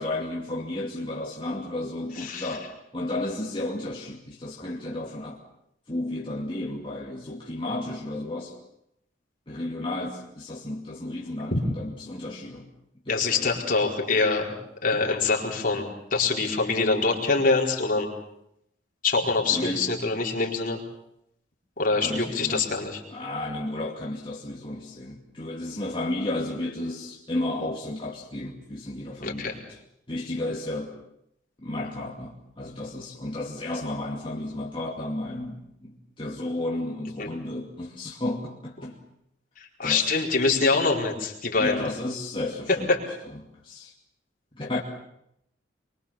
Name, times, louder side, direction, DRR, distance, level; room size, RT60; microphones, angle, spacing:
voice 1, 0.0-5.4 5.9-8.5 9.5-12.7 13.1-13.6 19.5-19.8 22.0-22.6 23.1-29.6 30.1-30.9 31.6-39.0 39.8-40.1 41.6-42.9 43.6-43.9 44.5-44.8, left 1 dB, 30° left, -3 dB, 2.5 m, -33 dB
voice 2, 2.2-2.6 11.5-11.6 13.1-14.5 14.8-18.1 19.0-20.8 21.8-23.0 29.2-29.6 37.2-37.3 39.6-41.8 42.7-43.0, left 3 dB, 50° left, 0 dB, 4.7 m, -24 dB
24.5 x 24.0 x 7.3 m, 0.78 s
head